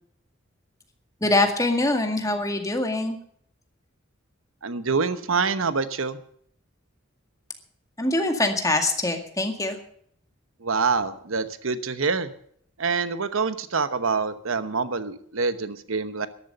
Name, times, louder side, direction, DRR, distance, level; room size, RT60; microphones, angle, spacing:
voice 1, 1.2-3.2 8.0-9.8, left 2 dB, 15° left, 4 dB, 2.0 m, -23 dB
voice 2, 4.6-6.2 10.6-12.3 12.8-16.3, right 4 dB, 80° right, 12 dB, 1.0 m, -26 dB
13.5 x 11.5 x 6.7 m, 0.63 s
head